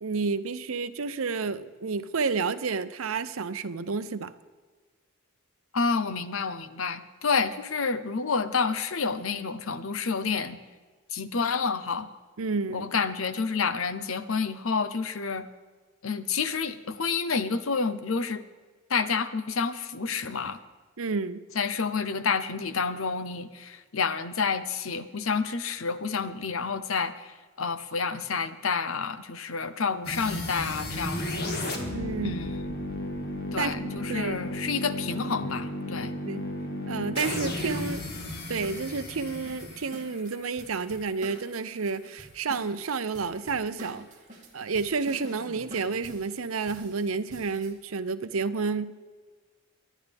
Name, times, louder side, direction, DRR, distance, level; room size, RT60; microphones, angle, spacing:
voice 1, 0.0-4.3 12.4-12.9 21.0-21.4 31.9-32.4 33.6-34.4 36.3-36.4 36.9-38.1 38.5-44.1 44.5-48.9, right 4 dB, 80° right, 13 dB, 0.7 m, -30 dB
voice 2, 5.7-10.6 11.1-12.1 12.7-15.5 16.0-18.4 18.9-20.6 21.5-27.3 27.6-31.6 32.2-32.6 33.5-36.2, left 5 dB, 75° left, 12 dB, 0.8 m, -29 dB
sound 1, 30.0-41.0, left 1 dB, 50° left, 2.0 m, -34 dB
sound 2, 37.6-47.7, right 1 dB, 35° right, 2.6 m, -47 dB
24.0 x 10.5 x 3.5 m, 1.4 s
head